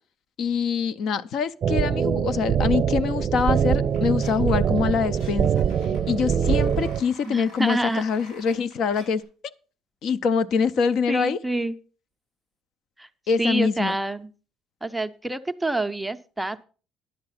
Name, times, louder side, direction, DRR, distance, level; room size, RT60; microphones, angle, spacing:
voice 1, 0.4-5.5 6.1-9.2 10.0-11.4 13.3-14.0, left 6 dB, 55° left, 0.5 m, -24 dB
sound 1, 1.6-7.0, right 8 dB, 40° right, 0.8 m, -23 dB
sound 2, 3.8-9.2, left 2 dB, 80° left, 6.4 m, -50 dB
voice 2, 7.2-8.0 11.1-11.8 13.0-13.1 13.4-14.3 14.8-16.6, right 2 dB, 5° right, 0.5 m, -27 dB
10.5 x 7.7 x 5.7 m
cardioid pair, 145°, 0 cm